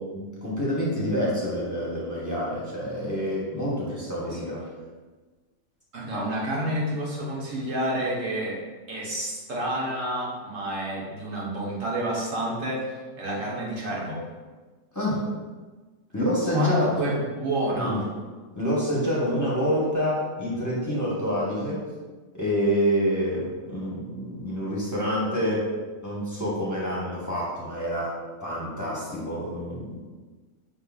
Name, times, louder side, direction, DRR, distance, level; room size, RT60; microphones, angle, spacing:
voice 1, 0.0-4.6 14.9-15.3 16.1-17.1 17.7-18.0 18.5-21.8 22.3-25.7 26.0-28.1 28.4-30.1, equal, 15° left, -7 dB, 0.8 m, -27 dB
voice 2, 5.9-8.6 8.9-14.2 16.5-18.1, right 1 dB, 75° right, -4 dB, 1.5 m, -29 dB
5.4 x 3.7 x 2.3 m, 1.3 s
omnidirectional pair, 1.4 m